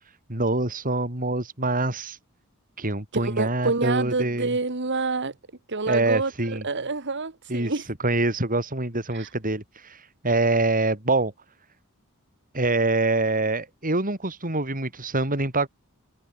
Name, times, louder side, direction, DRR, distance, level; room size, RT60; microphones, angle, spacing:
voice 1, 0.3-2.2 2.8-4.5 5.9-6.6 7.5-7.7 8.0-11.3 12.5-15.7, right 2 dB, 40° right, 6.1 m, -25 dB
voice 2, 3.1-5.3 5.7-7.9 9.1-9.3, right 3 dB, 55° right, 1.8 m, -27 dB
head